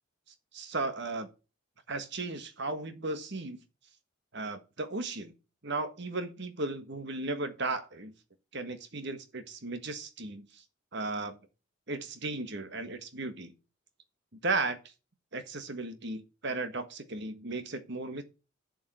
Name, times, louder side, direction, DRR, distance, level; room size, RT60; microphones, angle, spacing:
voice 1, 0.5-1.3 1.9-3.6 4.3-5.3 5.6-8.1 8.5-10.6 10.9-11.4 11.9-13.5 14.4-14.8 15.3-18.2, right 3 dB, 55° right, 1.5 m, -35 dB
7.3 x 6.7 x 6.2 m
head